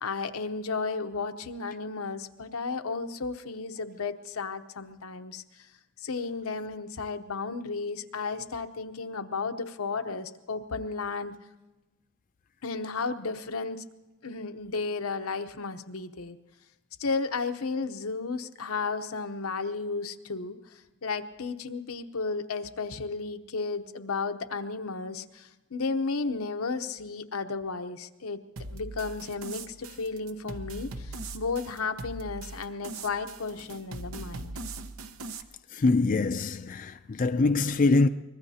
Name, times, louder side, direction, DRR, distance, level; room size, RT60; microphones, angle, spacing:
voice 1, 0.0-5.4 6.0-11.3 12.6-13.8 14.2-16.4 17.0-20.6 21.0-28.4 28.7-34.5, left 4 dB, 85° left, 0.9 m, -33 dB
sound 1, 28.6-35.4, right 2 dB, 75° right, 0.9 m, -41 dB
voice 2, 35.7-38.1, left 3 dB, 40° left, 0.4 m, -24 dB
24.5 x 20.5 x 2.8 m
head